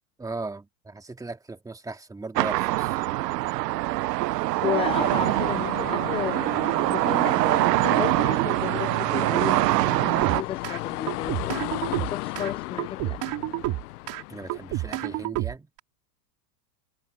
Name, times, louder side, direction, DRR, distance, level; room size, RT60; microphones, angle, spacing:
voice 1, 0.2-3.0 14.3-15.7, right 3 dB, 5° right, 2.3 m, -37 dB
sound 1, 2.4-10.4, right 17 dB, 75° right, 0.9 m, -24 dB
sound 2, 4.2-4.3 4.6-5.2 5.9-6.0 6.4-6.9 7.6-7.7 8.1-8.6 9.1-9.4 10.2-10.8 11.1-12.5 12.8-14.2 14.5-15.8, right 18 dB, 40° right, 3.2 m, -30 dB
voice 2, 4.6-6.4 6.9-9.6 10.2-11.6 11.9-13.2, left 10 dB, 10° left, 0.5 m, -33 dB
sound 3, 4.8-15.3, left 19 dB, 65° left, 0.9 m, -36 dB
supercardioid pair, 130°, 50 cm